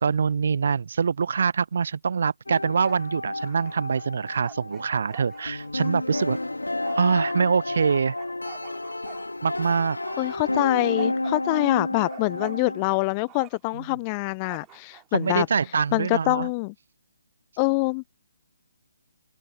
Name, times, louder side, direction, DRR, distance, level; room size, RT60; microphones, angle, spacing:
voice 1, 0.0-6.4 7.0-8.1 9.4-10.0 13.7-13.8 15.1-16.5, right 6 dB, 50° right, 0.7 m, -24 dB
sound 1, 2.5-12.8, left 2 dB, 80° left, 2.4 m, -31 dB
Bark, 2.5-3.1 3.4-7.4 7.9-9.7 10.0-13.0 13.3-13.8 14.4-15.3, right 19 dB, 20° right, 4.4 m, -46 dB
voice 2, 10.2-15.5 15.9-16.7 17.6-18.1, left 30 dB, 25° left, 0.9 m, -25 dB
open air
figure-of-eight pair, 140°, 0 cm